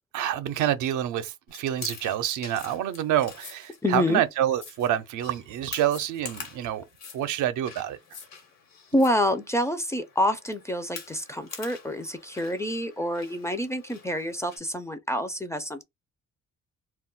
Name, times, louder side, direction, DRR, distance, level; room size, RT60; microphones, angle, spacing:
voice 1, 0.1-6.8 7.1-8.0, right 11 dB, 75° right, 0.5 m, -27 dB
Chewing mastication, 1.5-14.6, left 5 dB, 65° left, 1.1 m, -46 dB
sound 1, 3.4-3.8 4.5-5.1 5.9-6.2 6.9-7.3 8.0-8.4 9.0-9.1, left 6 dB, 90° left, 0.9 m, -47 dB
voice 2, 3.8-4.2 8.9-15.8, left 1 dB, 10° left, 0.4 m, -27 dB
2.3 x 2.0 x 3.8 m
cardioid pair, 90°, 30 cm